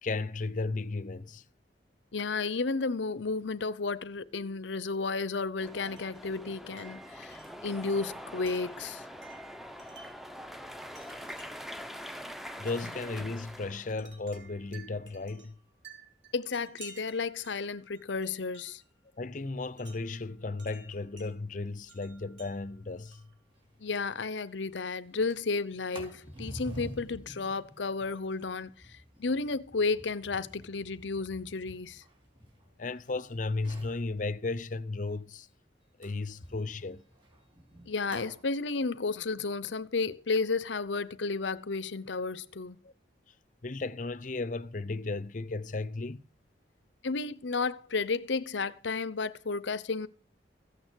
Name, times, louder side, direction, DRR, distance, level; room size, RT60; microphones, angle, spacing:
voice 1, 0.0-1.4 12.1-12.2 12.6-15.6 19.2-23.3 32.8-35.5 36.0-37.0 42.8-42.9 43.6-46.2, left 3 dB, 45° left, 0.7 m, -35 dB
voice 2, 2.1-9.1 16.3-18.8 23.8-32.0 37.9-42.8 47.0-50.1, left 4 dB, 85° left, 0.8 m, -32 dB
sound 1, 5.6-14.0, equal, ahead, 0.7 m, -44 dB
Wind chime, 5.8-6.2 6.8-10.3 10.9-11.8 12.7-12.9 14.0-18.9 19.8-21.3 21.9-23.4, right 4 dB, 85° right, 3.5 m, -55 dB
Sliding door, 23.6-23.7 24.0-24.1 24.4-24.7 25.1-33.1 33.5-34.0 36.0-38.4, equal, 25° right, 3.9 m, -48 dB
15.0 x 8.9 x 6.4 m
head